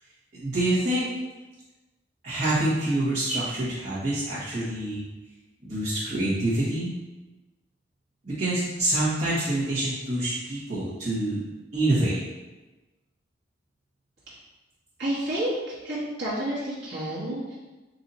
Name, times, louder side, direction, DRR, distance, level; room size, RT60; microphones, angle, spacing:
voice 1, 0.3-1.1 2.2-5.0 5.6-6.9 8.2-11.4 11.7-12.2, right 1 dB, 45° right, -13 dB, 1.3 m, -26 dB
voice 2, 15.0-17.6, right 1 dB, 65° right, -10 dB, 1.3 m, -30 dB
4.1 x 2.8 x 4.0 m, 1.2 s
head